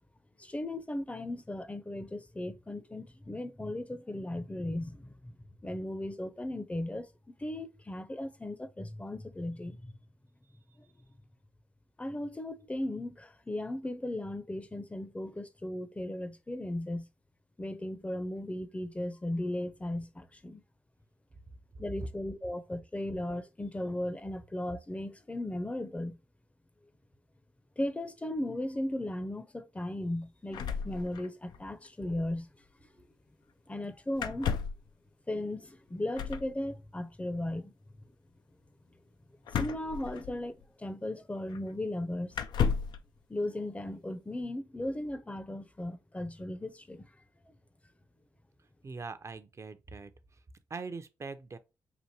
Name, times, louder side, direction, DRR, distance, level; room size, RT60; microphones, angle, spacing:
voice 1, 0.4-5.4 5.6-7.1 7.4-9.9 12.0-17.1 17.6-20.6 21.8-26.2 27.8-32.5 33.0-33.1 33.7-34.6 35.3-37.7 39.5-42.4 43.3-47.1, left 1 dB, 15° left, 0.6 m, -36 dB
sound 1, 30.5-31.6 31.8-31.9 32.1-32.3 34.1-34.9 36.1-36.5 39.5-40.6 41.5-41.6 42.3-43.0, left 7 dB, 75° left, 0.4 m, -33 dB
voice 2, 48.8-50.1 50.7-51.6, right 4 dB, 40° right, 0.6 m, -42 dB
6.0 x 2.6 x 2.8 m
supercardioid pair, 45°, 7 cm